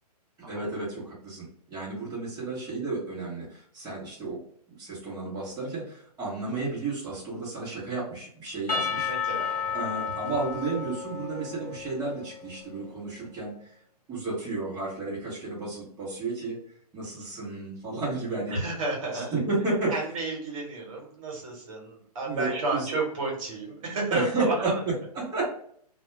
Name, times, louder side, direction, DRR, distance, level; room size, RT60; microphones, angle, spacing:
voice 1, 0.4-4.4 4.8-9.1 9.7-13.7 14.1-16.6 16.9-18.6 19.1-19.9 22.3-22.9 24.1-25.6, right 3 dB, 20° right, -7 dB, 0.9 m, -32 dB
Percussion / Church bell, 8.7-12.6, left 6 dB, 90° left, 0.9 m, -32 dB
voice 2, 9.0-9.5 18.5-19.4 19.9-24.8, right 3 dB, 55° right, -2 dB, 1.2 m, -31 dB
2.2 x 2.2 x 3.0 m, 0.62 s
hypercardioid pair, 130°, 20 cm